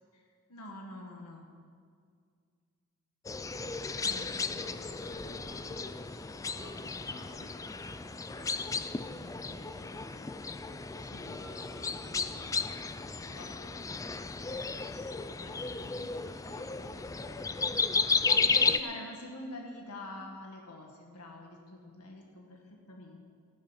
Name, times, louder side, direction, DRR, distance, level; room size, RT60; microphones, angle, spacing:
voice 1, 0.5-1.4 4.0-4.8 11.1-11.3 18.2-23.2, left 1 dB, 90° left, 1 dB, 1.8 m, -45 dB
sound 1, 3.2-18.8, left 4 dB, 15° left, 0.3 m, -33 dB
voice 2, 4.6-7.7 8.3-10.4 11.1-13.9 15.1-17.4, left 1 dB, 70° left, 1 dB, 1.8 m, -53 dB
14.5 x 10.5 x 5.8 m, 2.1 s
head